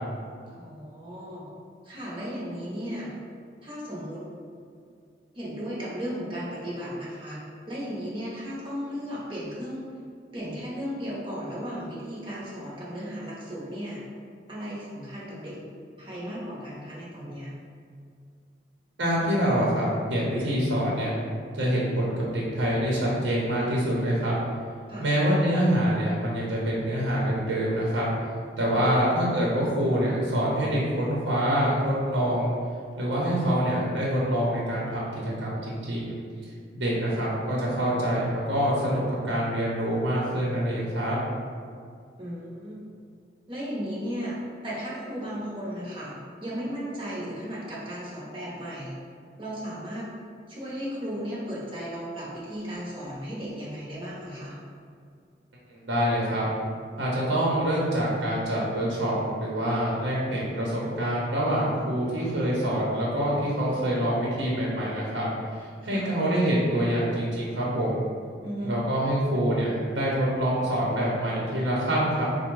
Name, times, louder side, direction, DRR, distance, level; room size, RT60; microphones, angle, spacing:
voice 1, 0.5-1.5 1.8-3.1 3.6-4.2 5.3-7.4 7.7-9.9 10.3-14.0 14.5-15.6 16.0-17.5 24.9-25.1 28.7-28.9 42.2-42.8 43.5-49.0 49.4-50.1 50.5-54.6 65.8-66.0 68.4-68.8, equal, 30° right, -6 dB, 0.8 m, -35 dB
voice 2, 19.0-21.1 21.5-24.3 25.0-28.1 28.6-32.5 33.0-36.2 36.7-41.2 55.7-56.4 57.0-65.3 65.6-68.0 68.6-72.3, equal, 80° right, -5 dB, 0.9 m, -26 dB
4.7 x 2.2 x 4.6 m, 2.2 s
head